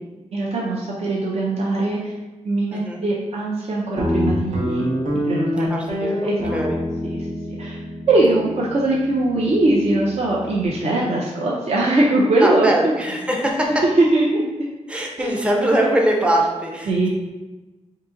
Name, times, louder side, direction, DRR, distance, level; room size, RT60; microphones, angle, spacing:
voice 1, 0.3-2.1 2.4-4.9 5.2-6.6 7.0-7.2 7.5-7.8 8.1-12.9 13.8-14.4 15.2-15.3 16.9-17.1, right 2 dB, 55° right, -5 dB, 0.6 m, -21 dB
voice 2, 2.7-3.0 5.7-6.8 12.4-13.8 14.9-17.1, right 1 dB, 10° right, 0 dB, 0.5 m, -22 dB
Guitar, 4.0-10.7, equal, 85° right, 1.1 m, -26 dB
3.8 x 2.7 x 3.9 m, 1.1 s
wide cardioid pair, 180°, 13 cm